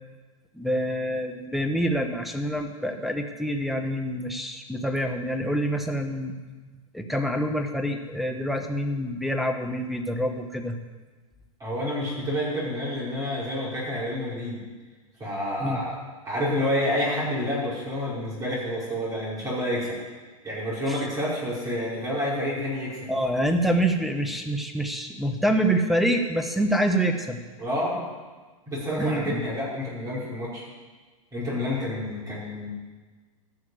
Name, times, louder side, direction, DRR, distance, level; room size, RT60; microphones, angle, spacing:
voice 1, 0.5-6.3 6.9-10.8 15.6-15.8 20.9-21.0 23.1-27.4 29.0-29.4, right 1 dB, ahead, 5 dB, 1.3 m, -26 dB
voice 2, 11.6-14.6 15.2-16.0 16.3-20.0 20.4-23.1 27.6-28.0 28.7-30.6 31.3-32.7, left 1 dB, 20° right, -7 dB, 5.1 m, -29 dB
14.5 x 6.5 x 7.9 m, 1.4 s
hypercardioid pair, 100°, 18 cm